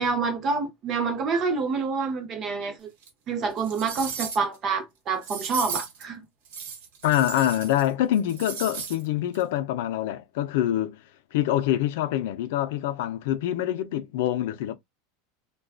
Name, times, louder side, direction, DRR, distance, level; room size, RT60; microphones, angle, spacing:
voice 1, 0.0-2.9 3.3-6.2, right 4 dB, 25° right, 0.7 m, -27 dB
sound 1, 3.0-3.1 3.6-4.6 5.2-6.0 6.5-7.9 8.1-9.0 9.3-9.4, right 6 dB, 65° right, 1.0 m, -35 dB
voice 2, 7.0-11.0 11.3-14.8, left 12 dB, 65° left, 0.5 m, -25 dB
2.4 x 2.2 x 2.3 m
supercardioid pair, 175°, 0 cm